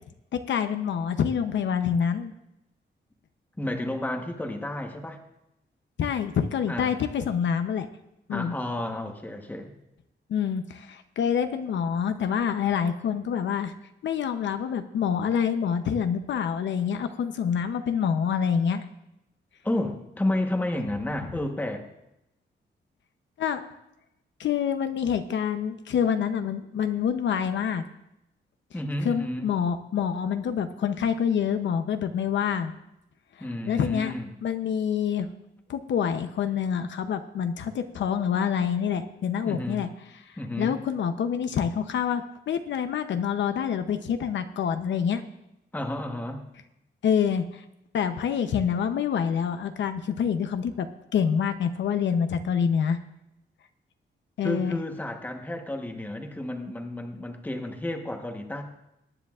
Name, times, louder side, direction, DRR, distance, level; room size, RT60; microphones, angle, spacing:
voice 1, 0.3-2.3 6.0-7.9 8.3-8.5 10.3-13.7 14.0-18.8 23.4-23.6 24.4-27.8 29.0-32.8 33.4-34.1 34.4-35.3 35.7-39.9 40.6-45.2 47.0-47.6 47.9-50.9 51.1-53.0 54.4-54.8, left 7 dB, 70° left, 8 dB, 0.7 m, -26 dB
voice 2, 3.6-5.2 6.7-7.0 8.3-9.7 19.6-21.8 28.7-29.5 33.4-34.3 39.4-39.9 40.4-40.8 45.7-46.4 54.4-58.6, left 1 dB, 10° left, 3 dB, 1.1 m, -31 dB
21.5 x 10.0 x 2.4 m, 0.87 s
wide cardioid pair, 175°, 19 cm